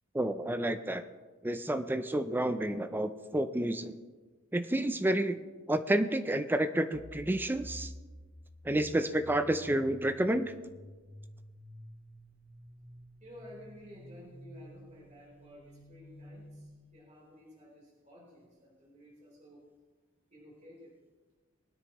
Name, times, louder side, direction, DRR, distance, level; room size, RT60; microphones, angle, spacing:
voice 1, 0.1-1.0 1.4-4.0 4.5-7.9 8.6-10.5, right 1 dB, 10° right, 9 dB, 0.4 m, -30 dB
sound 1, 6.9-16.7, equal, 20° left, 2.5 m, -51 dB
voice 2, 13.2-19.6 20.3-20.9, left 1 dB, 35° right, -4 dB, 3.5 m, -53 dB
20.5 x 9.9 x 3.0 m, 1.4 s
head